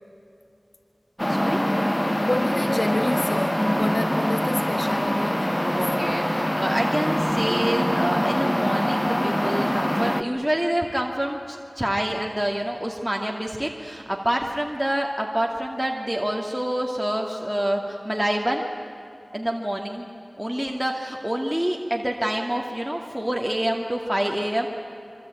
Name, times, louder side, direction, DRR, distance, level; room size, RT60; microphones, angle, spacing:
sound 1, 1.2-10.2, equal, 15° left, 1.2 m, -24 dB
voice 1, 1.3-1.7 5.7-18.6 19.3-20.1 20.4-24.7, right 1 dB, 5° right, 0 dB, 2.3 m, -27 dB
voice 2, 2.2-5.9, left 1 dB, 50° left, 6 dB, 1.5 m, -29 dB
26.0 x 24.5 x 9.2 m, 2.8 s
wide cardioid pair, 45°, 0 cm